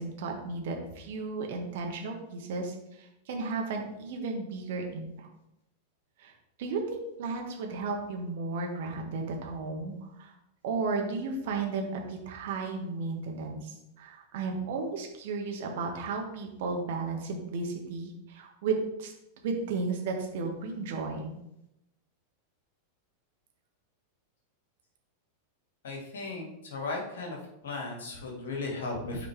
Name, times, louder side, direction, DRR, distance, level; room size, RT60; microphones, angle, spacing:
voice 1, 0.0-5.3 6.2-6.3 6.6-10.3 10.6-19.1 19.4-21.3, right 4 dB, 55° right, 2 dB, 1.3 m, -34 dB
voice 2, 25.8-27.4 27.6-29.3, left 3 dB, 60° left, 0 dB, 2.1 m, -36 dB
8.6 x 4.0 x 3.4 m, 0.85 s
figure-of-eight pair, 90°, 0 cm